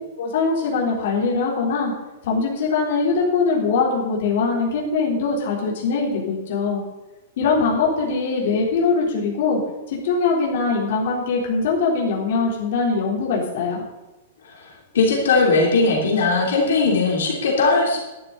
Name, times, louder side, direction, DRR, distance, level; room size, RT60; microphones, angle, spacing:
voice 1, 0.2-1.9 2.3-6.8 7.4-9.6 10.0-13.8, left 4 dB, 55° left, -4 dB, 3.8 m, -22 dB
voice 2, 14.9-18.0, left 3 dB, 90° left, -2 dB, 3.4 m, -18 dB
12.0 x 11.0 x 4.1 m, 1.1 s
supercardioid pair, 170°, 0 cm